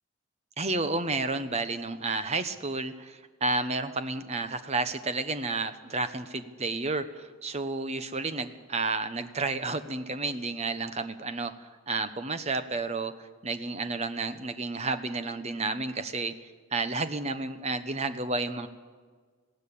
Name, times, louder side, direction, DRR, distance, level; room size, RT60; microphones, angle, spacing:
voice 1, 0.6-16.3 16.7-18.7, right 3 dB, 30° right, 10 dB, 1.0 m, -31 dB
20.0 x 16.0 x 8.6 m, 1.5 s
head